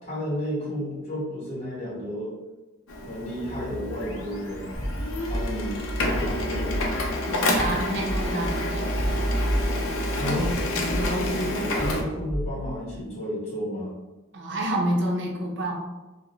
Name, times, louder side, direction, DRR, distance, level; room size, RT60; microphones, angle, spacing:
voice 1, 0.0-2.3 3.0-4.7 5.3-5.8 6.1-6.9 10.2-13.9, equal, 35° left, -7 dB, 1.0 m, -32 dB
Printer, 2.9-12.0, left 1 dB, 85° left, 0.5 m, -28 dB
sound 1, 4.7-13.0, equal, 15° left, 0.6 m, -33 dB
voice 2, 7.3-9.0 14.3-15.7, right 1 dB, 60° right, -1 dB, 0.6 m, -28 dB
2.4 x 2.1 x 3.0 m, 1.1 s
head